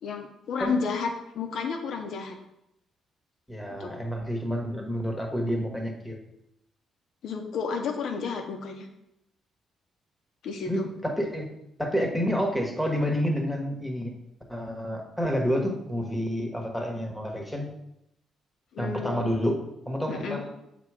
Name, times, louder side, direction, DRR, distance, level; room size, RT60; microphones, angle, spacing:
voice 1, 0.0-2.4 3.8-3.9 7.2-8.9 10.4-10.9 18.7-19.5 20.1-20.4, left 5 dB, 70° left, 4 dB, 0.9 m, -32 dB
voice 2, 3.5-6.2 10.7-11.5 11.8-14.1 14.5-17.7 18.8-19.6 19.9-20.5, equal, 5° left, 1 dB, 1.3 m, -29 dB
6.9 x 3.0 x 4.8 m, 0.82 s
cardioid pair, 90°, 0 cm